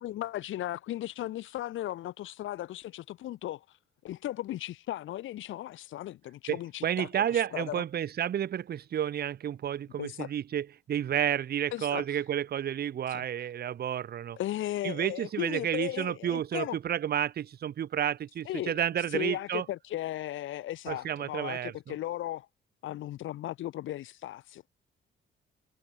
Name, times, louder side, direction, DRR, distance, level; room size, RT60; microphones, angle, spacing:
voice 1, 0.0-3.6 4.0-7.8 10.0-10.3 11.7-12.2 13.1-13.2 14.4-16.8 18.5-18.7 19.1-22.5 22.8-24.7, left 14 dB, 80° left, 1.3 m, -36 dB
voice 2, 6.5-14.4 14.8-19.6 20.9-22.0, right 10 dB, 50° right, 0.9 m, -31 dB
cardioid pair, 90°, 20 cm